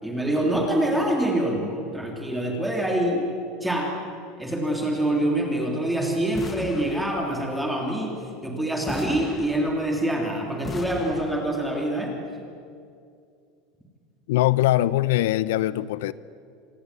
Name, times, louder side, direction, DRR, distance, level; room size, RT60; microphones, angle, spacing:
voice 1, 0.0-3.3 3.6-4.0 4.4-12.2, right 1 dB, 5° right, 1 dB, 3.3 m, -25 dB
sound 1, 6.3-7.6 8.9-10.1 10.6-11.8, left 4 dB, 15° left, 1.0 m, -37 dB
voice 2, 14.3-16.1, left 15 dB, 85° left, 17 dB, 0.7 m, -22 dB
26.5 x 20.5 x 9.8 m, 2.3 s
supercardioid pair, 165°, 0 cm